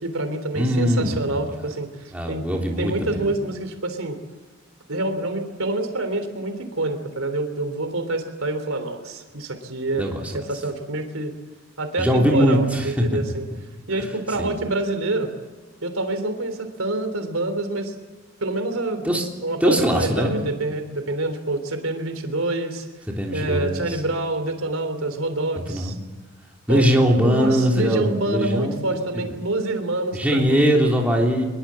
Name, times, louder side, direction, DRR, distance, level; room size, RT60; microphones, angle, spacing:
voice 1, 0.0-2.4 2.8-4.2 4.9-10.0 10.3-11.3 11.8-13.4 13.9-15.3 15.8-17.9 18.4-19.0 19.4-22.9 23.3-26.0 26.7-26.8 27.2-30.7, right 2 dB, 80° right, 7 dB, 3.4 m, -27 dB
voice 2, 0.5-1.2 1.6-1.7 2.1-3.3 10.0-10.3 12.0-13.0 14.0-14.1 14.4-14.6 19.0-19.3 19.6-20.4 23.2-24.0 25.7-25.9 26.7-29.2 30.1-31.4, equal, 5° right, -1 dB, 3.4 m, -21 dB
24.0 x 22.0 x 7.6 m, 1.3 s
head